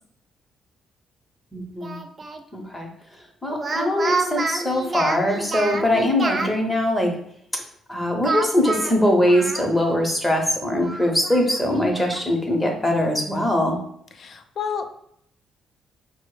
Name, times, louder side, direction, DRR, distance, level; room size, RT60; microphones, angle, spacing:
voice 1, 1.5-2.0 2.5-2.9 3.4-7.1 7.9-13.8, left 1 dB, 10° left, 2 dB, 0.8 m, -22 dB
Speech, 1.8-2.4 3.5-6.5 8.2-10.0 10.3-10.4 10.8-12.2, right 3 dB, 25° right, 0.4 m, -29 dB
voice 2, 14.2-14.9, left 6 dB, 45° left, 7 dB, 0.5 m, -30 dB
5.3 x 2.1 x 4.6 m, 0.69 s
cardioid pair, 150°, 0 cm